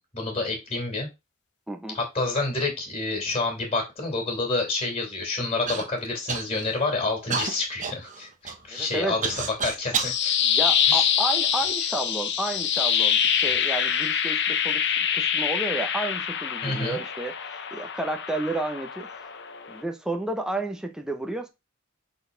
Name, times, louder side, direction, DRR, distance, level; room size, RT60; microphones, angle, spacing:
voice 1, 0.1-1.1 1.9-10.4 10.8-11.1 16.6-17.0, left 3 dB, 30° left, 2.7 m, -28 dB
voice 2, 1.7-2.0 8.7-9.2 10.4-19.3 19.7-21.5, right 2 dB, 5° right, 0.9 m, -31 dB
Human voice / Cough, 5.7-5.9 6.3-6.8 7.3-10.2 10.9-11.7 12.5-12.6 13.3-13.6, right 5 dB, 40° right, 1.0 m, -31 dB
sound 1, 9.7-19.8, left 8 dB, 55° left, 0.9 m, -25 dB
6.5 x 4.2 x 3.9 m
head